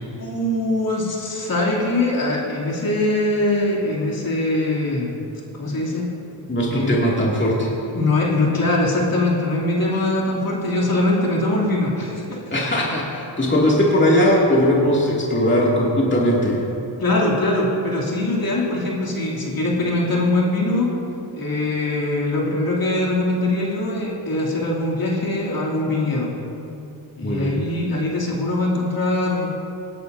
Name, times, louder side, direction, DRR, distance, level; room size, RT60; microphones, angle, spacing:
voice 1, 0.2-5.1 5.6-6.1 6.7-7.0 7.9-12.4 17.0-20.9 21.3-26.3 27.2-29.5, left 2 dB, 45° left, -4 dB, 2.9 m, -22 dB
voice 2, 6.5-7.7 12.5-16.6 27.2-27.6, equal, 20° left, -5 dB, 2.4 m, -19 dB
17.5 x 11.0 x 2.7 m, 2.8 s
supercardioid pair, 50°, 49 cm